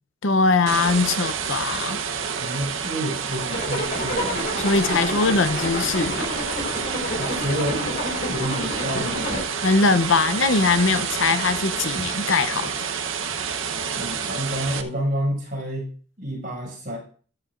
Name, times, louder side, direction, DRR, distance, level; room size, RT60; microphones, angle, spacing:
voice 1, 0.2-2.0 4.6-6.3 9.6-12.7, left 4 dB, 75° left, 0.8 m, -21 dB
sound 1, 0.7-14.8, right 6 dB, 80° right, 1.0 m, -29 dB
voice 2, 2.4-4.5 7.2-7.9 8.3-9.6 13.9-15.9 16.2-17.0, equal, 45° right, 6.2 m, -29 dB
Zipper (clothing), 3.5-9.4, left 1 dB, 45° left, 4.3 m, -29 dB
14.5 x 11.5 x 2.5 m
head